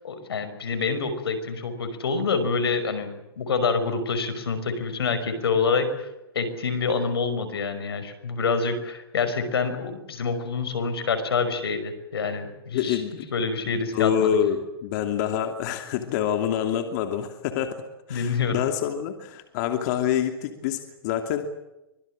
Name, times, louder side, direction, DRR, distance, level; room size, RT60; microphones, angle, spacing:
voice 1, 0.0-6.1 6.3-13.0 13.3-14.4 18.1-18.6, left 4 dB, 85° left, 9 dB, 5.6 m, -27 dB
voice 2, 12.7-13.2 13.7-17.8 18.1-21.5, left 9 dB, 45° left, 6 dB, 2.8 m, -26 dB
25.5 x 21.5 x 7.6 m, 0.94 s
hypercardioid pair, 140°, 12 cm